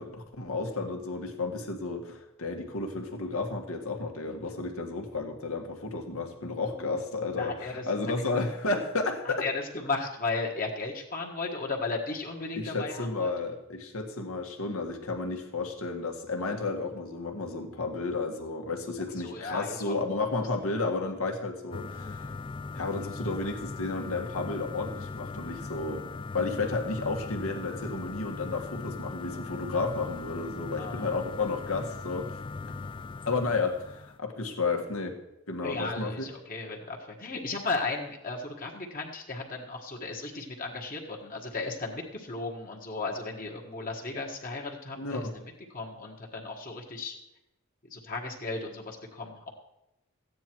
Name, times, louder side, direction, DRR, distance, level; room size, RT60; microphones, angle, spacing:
voice 1, 0.0-9.4 12.6-22.3 22.7-26.0 26.3-32.4 33.3-35.2 35.5-36.3 44.9-45.3, left 3 dB, 75° left, 3 dB, 1.6 m, -32 dB
voice 2, 6.7-7.9 9.2-13.3 19.2-20.0 30.8-31.2 35.6-47.2 47.9-49.5, left 3 dB, 40° left, 0 dB, 1.5 m, -35 dB
sound 1, 21.7-34.2, left 4 dB, 25° left, 0.3 m, -39 dB
14.0 x 9.4 x 4.6 m, 0.88 s
head